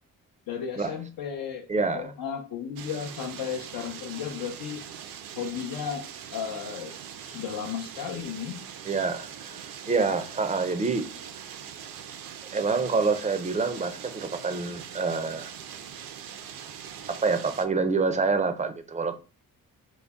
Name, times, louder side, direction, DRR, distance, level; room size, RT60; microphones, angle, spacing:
voice 1, 0.5-1.7 1.9-4.8 5.4-7.0 7.2-8.6, left 7 dB, 85° left, 0.6 m, -34 dB
voice 2, 1.7-2.0 8.8-11.0 12.5-15.5 17.1-19.1, right 4 dB, 20° right, 0.4 m, -27 dB
sound 1, 2.8-17.7, right 8 dB, 80° right, 0.5 m, -42 dB
3.8 x 2.0 x 3.4 m
wide cardioid pair, 135°, 34 cm